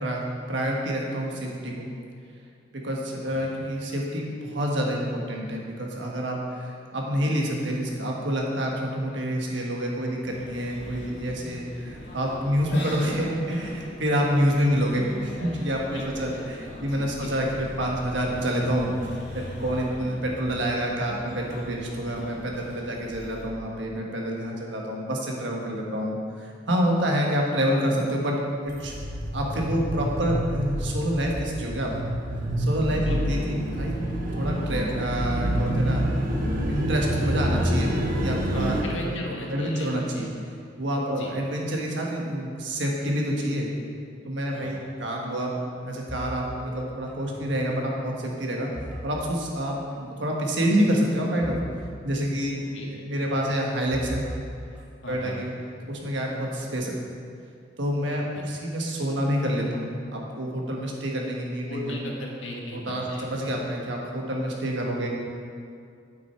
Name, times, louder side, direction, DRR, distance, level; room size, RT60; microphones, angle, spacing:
voice 1, 0.5-1.9 2.7-18.9 19.3-28.3 28.6-28.9 29.3-31.9 32.6-34.0 34.4-36.0 36.7-37.9 38.2-39.0 39.5-40.3 40.8-43.7 44.2-45.5 45.8-48.7 49.0-51.6 52.0-54.2 55.1-55.5 55.9-57.0 57.8-62.0 62.7-65.1, equal, 70° right, -1 dB, 1.5 m, -27 dB
voice 2, 3.2-3.5 15.9-16.4 16.9-17.3 20.0-20.1 33.0-33.2 38.5-40.3 41.1-41.3 44.5-44.8 52.5-52.9 55.0-55.4 58.3-58.5 61.7-63.6, left 1 dB, 85° left, -1 dB, 1.6 m, -37 dB
sound 1, 10.2-23.4, equal, 65° left, 2.5 m, -40 dB
sound 2, 28.7-38.8, right 1 dB, 50° right, 1.1 m, -27 dB
sound 3, 46.1-47.6 47.9-49.5 49.7-50.0 50.6-51.7 52.0-52.1 53.3-55.3 55.9-56.7, equal, 5° right, 1.5 m, -40 dB
9.0 x 8.1 x 4.5 m, 2.3 s
head